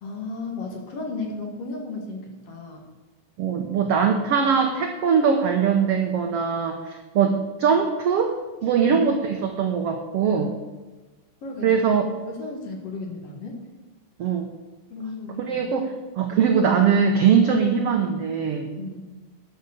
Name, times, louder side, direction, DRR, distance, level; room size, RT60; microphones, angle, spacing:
voice 1, 0.0-2.8 3.8-3.9 8.9-9.0 11.4-11.8 12.2-13.6 14.9-15.7 18.8-19.1, left 3 dB, 50° left, 1 dB, 2.3 m, -34 dB
voice 2, 3.4-10.5 11.6-12.0 14.2-14.5 15.4-18.7, right 6 dB, 85° right, 4 dB, 1.3 m, -21 dB
11.5 x 7.1 x 7.0 m, 1.3 s
omnidirectional pair, 4.0 m